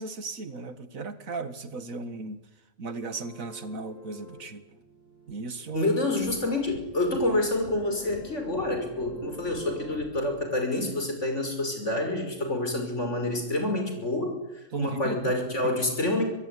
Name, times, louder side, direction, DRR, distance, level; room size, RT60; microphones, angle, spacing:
voice 1, 0.0-2.4 2.8-4.6 5.3-5.9 14.7-15.3 15.6-15.7, right 3 dB, 80° right, 12 dB, 2.1 m, -36 dB
sound 1, 3.0-10.3, left 2 dB, 80° left, 8.7 m, -47 dB
voice 2, 5.7-14.3 14.8-16.2, left 2 dB, 60° left, 5 dB, 6.2 m, -27 dB
25.0 x 21.0 x 10.0 m, 1.0 s
omnidirectional pair, 1.4 m